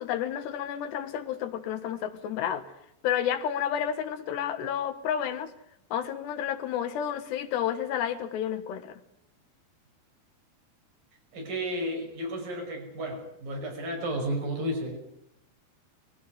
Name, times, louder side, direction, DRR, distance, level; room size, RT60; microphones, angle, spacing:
voice 1, 0.0-2.6 3.0-5.5 5.9-9.0, left 9 dB, 85° left, 9 dB, 3.7 m, -31 dB
voice 2, 11.3-15.0, right 1 dB, 55° right, 2 dB, 7.3 m, -32 dB
22.0 x 16.5 x 9.5 m, 0.78 s
omnidirectional pair, 4.8 m